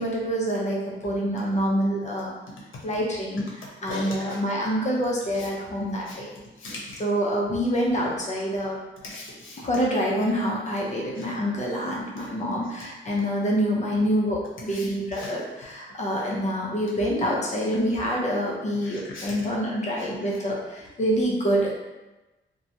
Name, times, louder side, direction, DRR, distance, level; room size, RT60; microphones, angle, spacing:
voice 1, 0.0-2.3 2.8-6.3 7.0-8.8 9.6-21.7, equal, 35° left, -3 dB, 0.6 m, -26 dB
voice 2, 3.9-4.4 5.3-5.5 6.1-6.2 6.6-7.0 9.0-9.6 11.2-11.3 14.7-14.9 15.1-15.3 18.8-19.5 20.0-20.1, left 2 dB, 80° left, -3 dB, 0.8 m, -38 dB
2.9 x 2.2 x 2.7 m, 1.1 s
wide cardioid pair, 155°, 20 cm